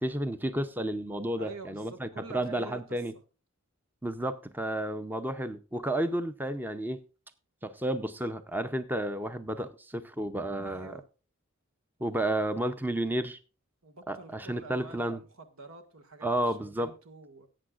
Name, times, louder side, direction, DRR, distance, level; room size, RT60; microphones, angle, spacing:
voice 1, 0.0-3.1 4.0-7.0 7.6-10.9 12.0-13.4 14.1-15.2 16.2-16.9, right 1 dB, 10° right, 0.6 m, -32 dB
voice 2, 1.4-3.0 10.6-11.0 13.8-17.5, right 4 dB, 80° right, 1.7 m, -48 dB
17.5 x 8.7 x 2.5 m
head